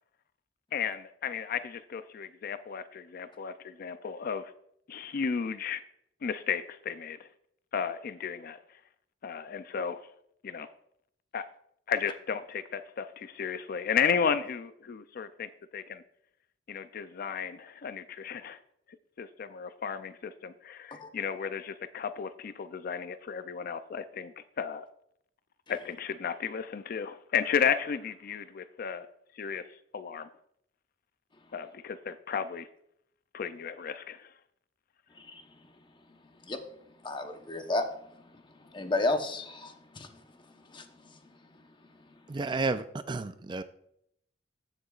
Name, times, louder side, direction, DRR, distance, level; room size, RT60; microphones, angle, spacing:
voice 1, 0.7-4.5 4.9-5.8 6.2-7.3 7.7-8.6 9.2-10.0 10.4-10.7 11.3-11.4 11.9-16.0 16.7-18.6 19.2-24.9 25.7-29.1 29.4-29.6 29.9-30.3 31.5-32.7 33.3-34.3, left 7 dB, 55° left, 11 dB, 0.4 m, -33 dB
voice 2, 37.0-37.9 38.1-40.2 40.7-41.2, left 2 dB, 25° left, 6 dB, 0.9 m, -33 dB
voice 3, 42.3-43.6, right 3 dB, 25° right, 12 dB, 0.4 m, -31 dB
14.5 x 6.6 x 2.4 m, 0.72 s
head